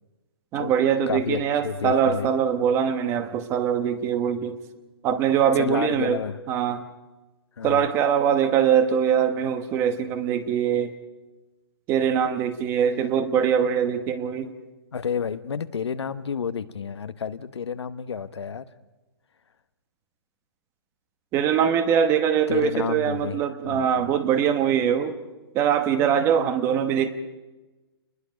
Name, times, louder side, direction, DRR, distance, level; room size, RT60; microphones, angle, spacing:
voice 1, 0.5-4.6 5.0-6.2 6.5-6.8 7.6-10.9 11.9-14.5 21.3-25.2 25.5-27.1, right 8 dB, 20° right, 10 dB, 1.1 m, -22 dB
voice 2, 1.1-2.3 5.5-6.4 7.6-7.9 14.9-18.7 22.5-24.2, left 7 dB, 90° left, 11 dB, 1.2 m, -30 dB
29.5 x 20.5 x 5.2 m, 1.1 s
hypercardioid pair, 160°, 14 cm